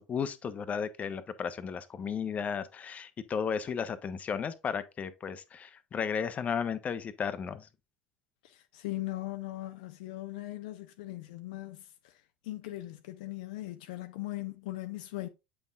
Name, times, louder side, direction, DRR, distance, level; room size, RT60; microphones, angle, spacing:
voice 1, 0.0-7.7, left 6 dB, 35° left, 0.8 m, -34 dB
voice 2, 8.4-12.1 12.4-15.3, left 17 dB, 70° left, 0.5 m, -39 dB
8.0 x 5.4 x 2.4 m
hypercardioid pair, 70°, 4 cm